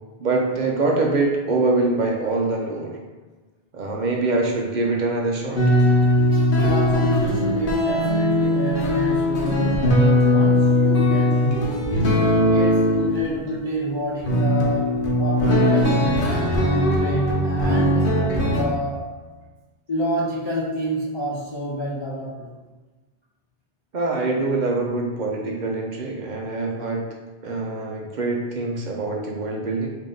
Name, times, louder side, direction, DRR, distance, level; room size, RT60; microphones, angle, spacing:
voice 1, 0.2-3.0 3.7-5.6 23.9-27.0 27.4-29.9, right 3 dB, 50° right, 0 dB, 0.7 m, -24 dB
sound 1, 5.6-13.4 14.2-18.6, left 1 dB, 55° left, 0.9 m, -19 dB
voice 2, 6.5-12.2 12.5-18.1 18.5-19.2 19.9-22.5, equal, 40° left, -6 dB, 0.4 m, -28 dB
3.6 x 2.8 x 3.7 m, 1.3 s
omnidirectional pair, 1.1 m